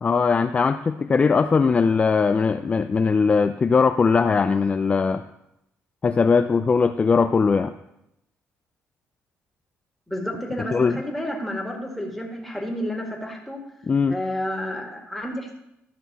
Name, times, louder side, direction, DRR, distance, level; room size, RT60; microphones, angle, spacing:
voice 1, 0.0-5.2 6.0-7.7 10.7-11.0 13.9-14.1, left 5 dB, 25° left, 8 dB, 0.3 m, -20 dB
voice 2, 10.1-13.6 14.1-15.6, left 1 dB, 5° left, 0 dB, 1.8 m, -30 dB
12.0 x 6.0 x 4.1 m, 0.84 s
cardioid pair, 115°, 5 cm